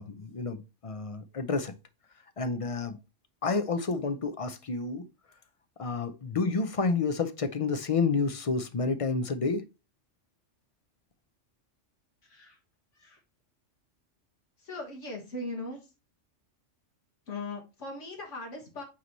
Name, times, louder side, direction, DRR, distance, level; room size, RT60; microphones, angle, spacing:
voice 1, 0.0-1.7 2.4-3.0 3.4-5.0 5.8-9.6, left 4 dB, 40° left, 0.5 m, -29 dB
voice 2, 12.2-12.6 12.9-13.2 14.6-15.9 17.3-18.8, left 2 dB, 75° left, 1.8 m, -39 dB
8.5 x 3.0 x 4.0 m
omnidirectional pair, 1.3 m